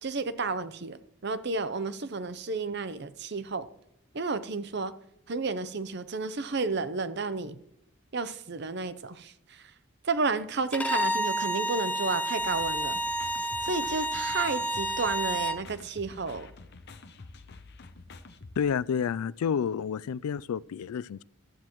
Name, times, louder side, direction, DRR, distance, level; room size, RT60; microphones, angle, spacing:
voice 1, 0.0-3.7 4.1-4.9 5.3-7.6 8.1-9.7 10.0-13.0 13.6-16.5, right 4 dB, 50° right, 0.7 m, -32 dB
Bowed string instrument, 10.7-15.6, right 1 dB, 5° left, 0.5 m, -30 dB
sound 1, 12.4-18.6, left 3 dB, 50° left, 0.8 m, -48 dB
voice 2, 18.6-21.2, left 7 dB, 85° left, 0.3 m, -30 dB
15.0 x 12.0 x 3.0 m
head